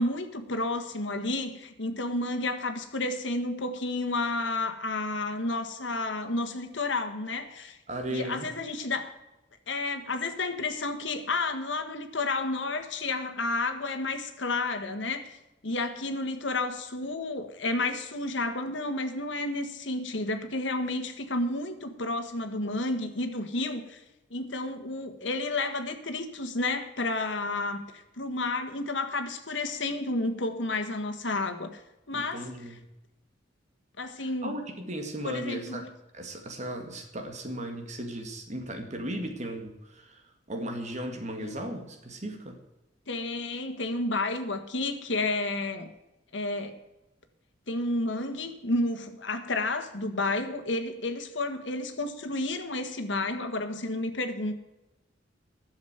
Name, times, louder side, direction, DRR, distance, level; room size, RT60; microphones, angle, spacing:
voice 1, 0.0-7.8 8.1-9.1 9.7-15.4 15.6-24.0 24.3-31.7 32.1-32.8 34.0-34.6 35.2-35.9 41.4-41.5 43.1-45.9 46.3-46.8 47.7-54.5, left 2 dB, 75° left, 7 dB, 1.6 m, -31 dB
voice 2, 7.9-8.5 32.1-32.9 34.2-35.9 36.1-40.2 40.5-42.6, right 1 dB, 40° right, 5 dB, 1.9 m, -36 dB
11.5 x 7.4 x 9.3 m, 0.95 s
head